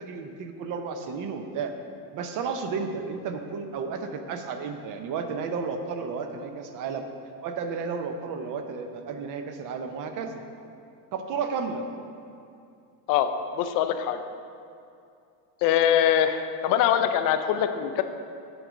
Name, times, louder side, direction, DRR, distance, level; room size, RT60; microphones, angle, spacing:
voice 1, 0.0-1.8 2.1-7.0 7.4-10.4 11.1-11.9, right 5 dB, 40° right, 6 dB, 0.7 m, -32 dB
voice 2, 13.1-14.2 15.6-18.0, left 9 dB, 45° left, 9 dB, 0.5 m, -23 dB
8.1 x 3.8 x 6.2 m, 2.5 s
supercardioid pair, 135°, 50 cm